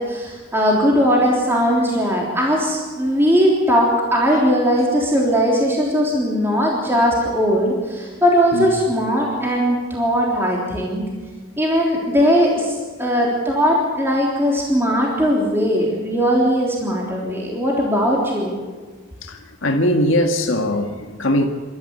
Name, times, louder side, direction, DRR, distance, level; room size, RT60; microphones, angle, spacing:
voice 1, 0.0-11.0 11.6-18.5, equal, 10° right, -3 dB, 3.5 m, -19 dB
voice 2, 19.6-21.5, left 1 dB, 70° left, 3 dB, 1.9 m, -20 dB
27.5 x 13.5 x 8.4 m, 1.4 s
head